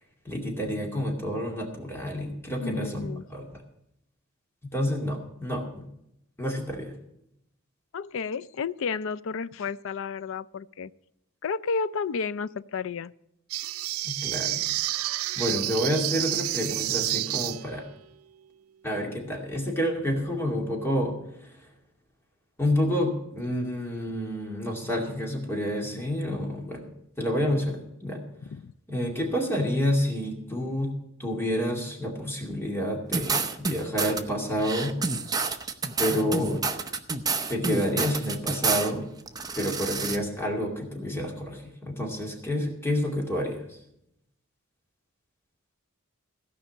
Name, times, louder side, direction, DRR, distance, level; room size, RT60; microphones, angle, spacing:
voice 1, 0.2-3.6 4.6-5.9 6.4-7.0 14.0-14.7 15.4-17.8 18.8-21.7 22.6-26.8 27.2-28.2 28.9-30.9 31.2-35.0 36.0-36.6 37.5-39.1 39.5-43.8, equal, 10° left, 0 dB, 2.3 m, -29 dB
voice 2, 2.6-3.2 7.9-10.9 11.4-13.1 28.5-28.7, left 5 dB, 65° left, 17 dB, 0.4 m, -32 dB
sound 1, 13.5-17.9, right 16 dB, 90° right, 0.4 m, -29 dB
sound 2, 33.1-34.2 34.6-38.9 39.3-40.2, right 4 dB, 20° right, 0.8 m, -29 dB
16.5 x 5.5 x 8.4 m, 0.79 s
head